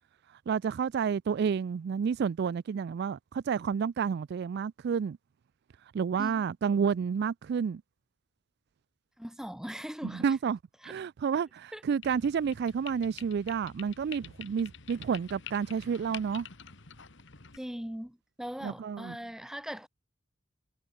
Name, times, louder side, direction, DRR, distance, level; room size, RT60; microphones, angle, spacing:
voice 1, 0.5-5.2 5.9-7.8 10.1-10.6 10.8-16.5 18.6-19.2, right 6 dB, 55° right, 0.3 m, -30 dB
voice 2, 9.2-10.4 10.8-10.9 11.7-11.8 17.5-19.9, equal, 5° right, 1.0 m, -40 dB
sound 1, 12.0-17.6, left 8 dB, 65° left, 2.1 m, -48 dB
head